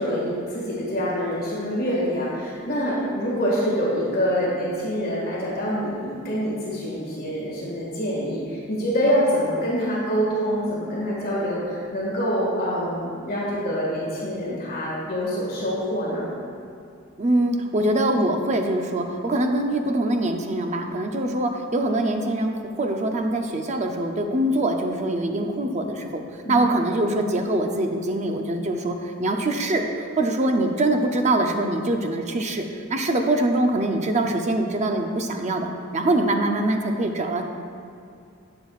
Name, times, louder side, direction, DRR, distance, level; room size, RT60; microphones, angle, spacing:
voice 1, 0.0-16.3 26.4-26.6, equal, 45° left, -6 dB, 1.8 m, -25 dB
voice 2, 17.2-26.2 26.5-37.5, right 1 dB, 35° right, 4 dB, 0.6 m, -23 dB
11.0 x 7.6 x 2.4 m, 2.5 s
head